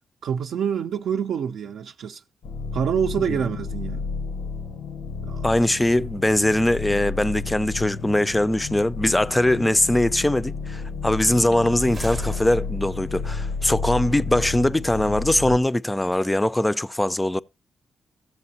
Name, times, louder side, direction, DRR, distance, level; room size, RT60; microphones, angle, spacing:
voice 1, 0.2-2.2 2.7-4.0 5.2-5.5, right 8 dB, 75° right, 0.5 m, -26 dB
sound 1, 2.4-15.6, left 4 dB, 85° left, 0.8 m, -31 dB
voice 2, 5.4-17.4, left 1 dB, 10° left, 0.4 m, -21 dB
sound 2, 11.4-13.1, right 3 dB, 35° right, 0.7 m, -39 dB
14.0 x 7.6 x 2.8 m
cardioid pair, 85°, 0 cm